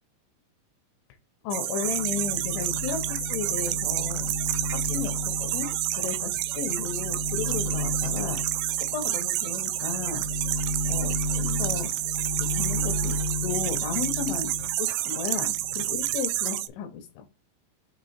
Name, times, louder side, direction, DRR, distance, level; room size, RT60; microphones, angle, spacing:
voice 1, 1.4-4.3 4.7-8.4 8.9-10.3 10.9-11.9 12.4-17.3, left 7 dB, 85° left, 5 dB, 3.4 m, -34 dB
sound 1, 1.5-16.7, right 15 dB, 80° right, 2.7 m, -29 dB
sound 2, 1.8-14.8 15.1-16.1, left 1 dB, 65° right, 3.6 m, -33 dB
7.5 x 3.2 x 4.3 m, 0.27 s
omnidirectional pair, 5.3 m